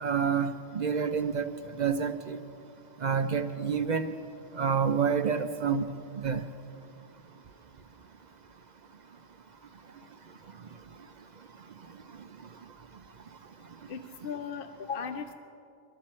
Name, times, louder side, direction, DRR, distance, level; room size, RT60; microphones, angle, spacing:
voice 1, 0.0-1.5 1.8-2.4 3.0-4.1 4.6-5.9 6.2-6.4, right 6 dB, 50° right, 9 dB, 0.6 m, -28 dB
voice 2, 13.9-15.3, left 6 dB, 60° left, 7 dB, 0.8 m, -37 dB
23.0 x 13.5 x 4.3 m, 2.5 s
omnidirectional pair, 1.1 m